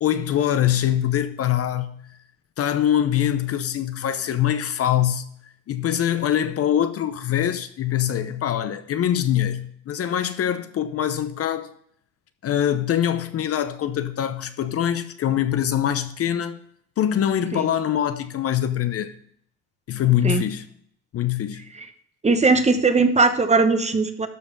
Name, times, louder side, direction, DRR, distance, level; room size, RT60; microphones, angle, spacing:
voice 1, 0.0-2.2 2.6-5.3 5.7-11.7 12.4-16.6 17.0-19.1 19.9-20.7 21.1-21.6, left 10 dB, 40° left, 0.8 m, -23 dB
voice 2, 22.2-24.3, right 3 dB, 20° right, 1.1 m, -19 dB
12.5 x 5.1 x 5.3 m
supercardioid pair, 90°, 35 cm